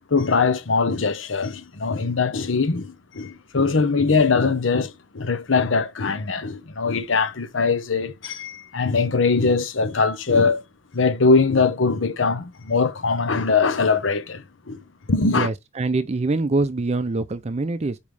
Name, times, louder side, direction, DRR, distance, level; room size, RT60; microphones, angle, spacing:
voice 1, 0.1-10.6 10.9-14.8 15.1-15.5, left 4 dB, 80° left, 0.9 m, -21 dB
voice 2, 15.3-18.0, right 3 dB, 35° right, 0.5 m, -24 dB
5.3 x 5.2 x 4.8 m
head